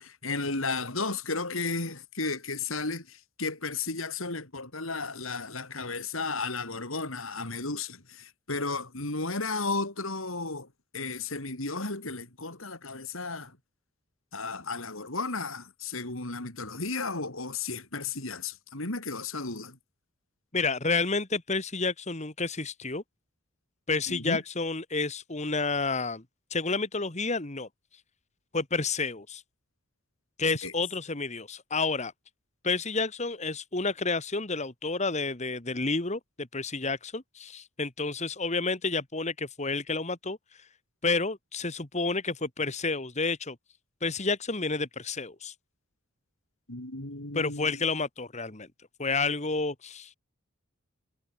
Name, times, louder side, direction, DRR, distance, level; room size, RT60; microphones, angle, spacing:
voice 1, 0.0-10.7 10.9-13.6 14.3-19.8 24.1-24.4 30.6-30.7 46.7-47.8, left 3 dB, 70° left, 4.3 m, -34 dB
voice 2, 20.5-23.0 23.9-26.2 26.5-27.7 28.5-29.4 30.4-32.1 32.6-40.6 41.0-43.6 44.0-45.5 47.3-48.7 49.0-50.1, left 3 dB, 35° left, 2.0 m, -30 dB
head